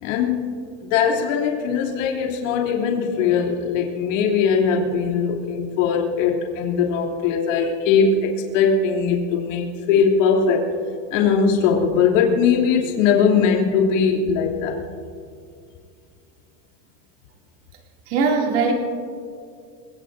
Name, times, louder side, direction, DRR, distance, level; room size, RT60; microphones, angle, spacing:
voice 1, 0.0-10.7 11.1-14.8, left 6 dB, 75° left, -1 dB, 3.1 m, -20 dB
voice 2, 18.1-18.7, right 5 dB, 55° right, 0 dB, 2.7 m, -20 dB
27.0 x 18.0 x 2.7 m, 2.3 s
supercardioid pair, 170°, 39 cm